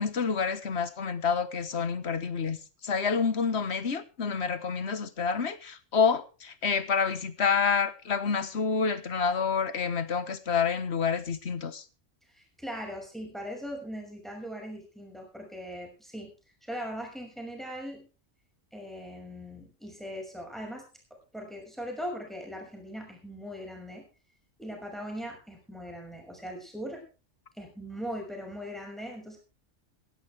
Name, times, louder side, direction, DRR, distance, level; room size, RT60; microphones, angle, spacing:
voice 1, 0.0-2.6 2.8-11.8, left 6 dB, 60° left, 1.6 m, -28 dB
voice 2, 12.3-16.3 16.6-18.0 18.7-20.9 21.3-24.1 24.6-27.0 27.6-29.4, equal, ahead, 6.0 m, -40 dB
16.5 x 16.0 x 3.4 m
omnidirectional pair, 1.3 m